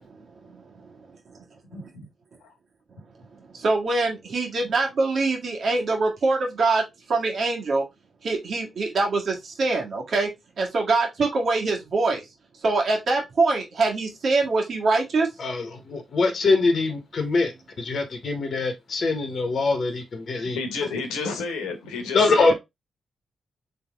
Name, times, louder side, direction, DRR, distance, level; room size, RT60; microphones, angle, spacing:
voice 1, 0.2-1.4 1.8-1.9 3.3-7.8 8.2-10.3 10.6-12.3 12.5-15.3, right 3 dB, 60° right, 1.7 m, -24 dB
voice 2, 1.7-2.1 2.4-2.5 20.5-22.5, left 4 dB, 85° left, 1.2 m, -31 dB
voice 3, 15.9-17.5 17.8-20.6 22.1-22.5, left 3 dB, 55° left, 1.1 m, -23 dB
4.3 x 3.5 x 3.5 m
hypercardioid pair, 40°, 0 cm